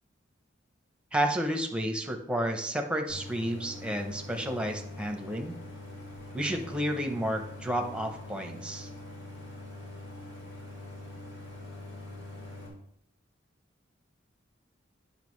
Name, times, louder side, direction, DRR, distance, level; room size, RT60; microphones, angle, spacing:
voice 1, 1.1-5.5 6.3-8.9, equal, 5° right, 5 dB, 0.7 m, -31 dB
Idling, 3.1-12.7, left 2 dB, 75° left, 2.4 m, -44 dB
9.0 x 5.7 x 3.2 m, 0.73 s
head